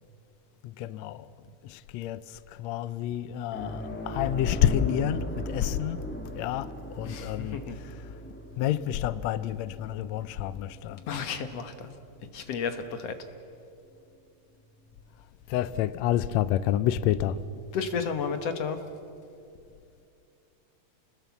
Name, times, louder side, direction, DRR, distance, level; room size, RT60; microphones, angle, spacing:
voice 1, 0.6-1.3 1.6-6.0 6.4-7.6 8.6-11.0 15.5-17.4, left 11 dB, 85° left, 1.5 m, -29 dB
sound 1, 3.5-12.5 12.8-13.0 15.0-15.1, left 1 dB, 5° left, 1.0 m, -38 dB
voice 2, 7.0-7.8 11.1-12.0 12.3-13.2 17.7-18.8, left 6 dB, 60° left, 1.9 m, -32 dB
29.0 x 20.5 x 7.1 m
omnidirectional pair, 3.9 m